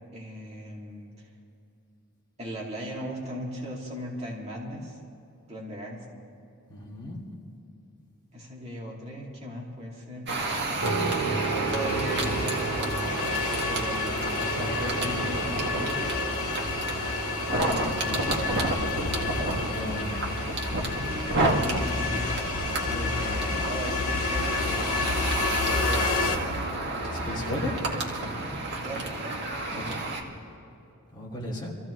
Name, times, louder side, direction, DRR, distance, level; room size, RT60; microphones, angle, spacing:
voice 1, 0.1-1.3 2.4-5.0 5.5-6.0 8.3-10.3 11.5-13.1 13.5-16.0 17.5-18.6 21.0-22.4 22.8-25.4 25.6-26.2 28.8-29.2, equal, 30° right, -4 dB, 2.5 m, -37 dB
voice 2, 6.7-7.2 19.6-20.2 27.1-27.7 29.7-30.0 31.1-31.7, left 1 dB, 20° left, -5 dB, 2.8 m, -35 dB
sound 1, 10.3-30.2, right 2 dB, 50° right, 2.0 m, -31 dB
sound 2, 10.8-25.5, right 4 dB, 90° right, 1.9 m, -36 dB
sound 3, 11.7-26.4, left 4 dB, 65° left, 1.2 m, -30 dB
25.5 x 15.0 x 3.2 m, 2.8 s
head